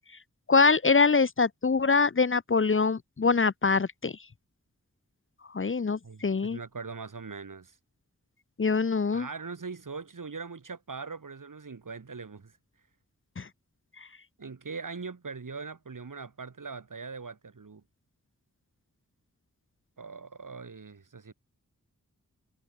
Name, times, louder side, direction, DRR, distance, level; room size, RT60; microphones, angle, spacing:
voice 1, 0.5-4.1 5.5-6.6 8.6-9.3 13.4-13.5, left 4 dB, 40° left, 0.8 m, -24 dB
voice 2, 6.0-7.8 9.1-12.6 14.4-17.8 20.0-21.3, right 4 dB, 75° right, 7.2 m, -41 dB
wide cardioid pair, 80°, 32 cm